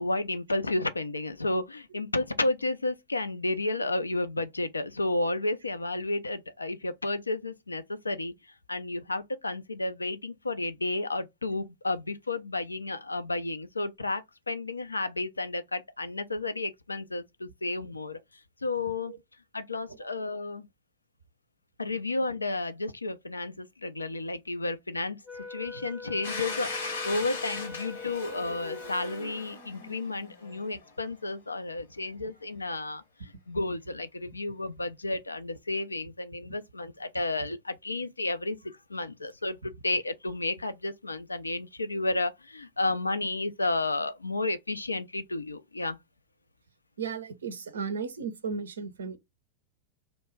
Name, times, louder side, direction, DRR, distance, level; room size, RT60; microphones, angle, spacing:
voice 1, 0.0-8.3 8.7-18.2 18.6-19.1 19.5-20.7 21.8-46.0, left 2 dB, 80° left, 0.3 m, -32 dB
Wind instrument woodwind instrument, 25.3-29.6, left 3 dB, ahead, 0.6 m, -44 dB
Domestic sounds home sounds, 26.2-30.9, left 3 dB, 65° left, 0.8 m, -38 dB
voice 2, 47.0-49.2, right 5 dB, 70° right, 0.5 m, -35 dB
2.2 x 2.0 x 3.2 m
figure-of-eight pair, 90°, 0 cm